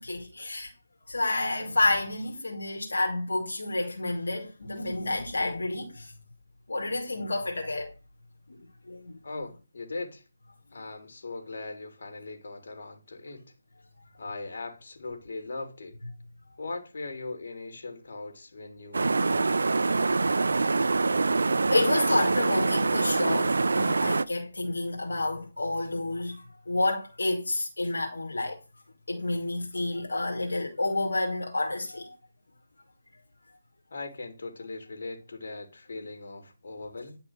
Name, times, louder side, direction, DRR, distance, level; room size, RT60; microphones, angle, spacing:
voice 1, 0.0-0.7 1.1-6.1 6.7-7.9 8.9-9.1 21.7-28.6 29.1-32.1, left 2 dB, 80° left, 2.5 m, -29 dB
voice 2, 9.2-10.2 10.7-13.5 14.1-16.0 16.6-19.8 33.9-37.2, left 3 dB, 60° left, 3.3 m, -39 dB
sound 1, 18.9-24.2, right 3 dB, 70° right, 0.7 m, -25 dB
11.0 x 5.8 x 6.4 m
figure-of-eight pair, 160°, 0 cm